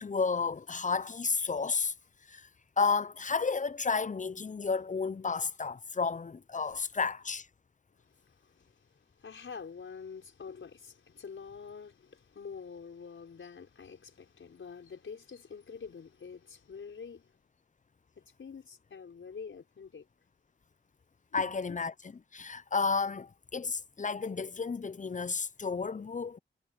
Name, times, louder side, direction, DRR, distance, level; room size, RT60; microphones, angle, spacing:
voice 1, 0.0-1.9 2.3-2.5 2.8-7.5 21.3-21.9 22.3-26.4, left 4 dB, 40° left, 0.7 m, -32 dB
voice 2, 8.2-8.9 9.2-17.3 18.2-20.1 21.3-21.8, left 6 dB, 80° left, 5.5 m, -46 dB
cardioid pair, 40°, 20 cm